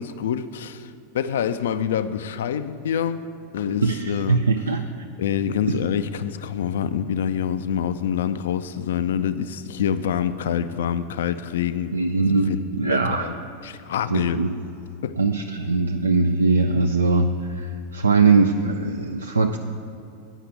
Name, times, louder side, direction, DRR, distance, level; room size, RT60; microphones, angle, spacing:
voice 1, 0.0-3.3 3.5-4.4 5.2-11.9 12.2-12.6 12.9-14.4 15.0-15.2, left 8 dB, 65° left, 12 dB, 0.3 m, -26 dB
voice 2, 3.8-4.8 5.7-5.8 11.9-13.3 14.1-14.6 15.2-19.6, right 4 dB, 80° right, 4 dB, 0.4 m, -21 dB
9.0 x 5.7 x 8.0 m, 2.7 s
figure-of-eight pair, 85°, 0 cm